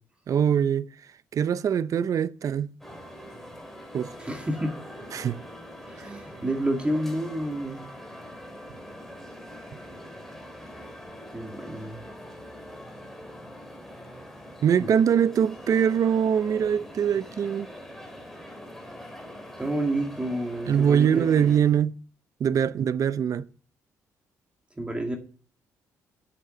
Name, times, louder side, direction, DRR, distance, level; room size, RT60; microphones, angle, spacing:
voice 1, 0.3-0.9 1.3-2.7 3.9-4.1 5.1-5.4 14.6-17.7 20.7-22.0 22.4-23.5, right 8 dB, 55° right, 0.6 m, -23 dB
sound 1, 2.8-21.6, equal, 5° left, 2.8 m, -43 dB
voice 2, 4.2-4.8 5.9-7.9 11.3-12.0 14.8-14.9 19.6-21.5 24.8-25.2, right 1 dB, 15° right, 2.0 m, -29 dB
7.6 x 7.0 x 7.8 m
cardioid pair, 75°, 7 cm